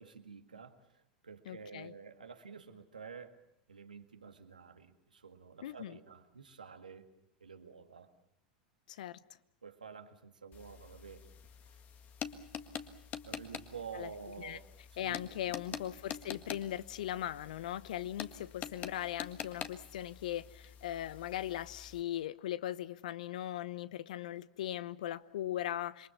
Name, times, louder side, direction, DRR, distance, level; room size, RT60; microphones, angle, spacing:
voice 1, 0.0-3.4 3.7-7.1 7.4-8.1 9.6-11.3 11.7-11.8 13.3-14.6 14.9-15.8, right 6 dB, 90° right, 2.0 m, -50 dB
voice 2, 1.5-1.9 5.6-6.0 8.9-9.2 13.9-14.1 14.4-14.6 15.0-26.1, left 12 dB, 70° left, 0.9 m, -39 dB
sound 1, 10.5-22.0, left 8 dB, 40° left, 1.7 m, -46 dB
27.0 x 23.0 x 7.2 m
hypercardioid pair, 90°, 4 cm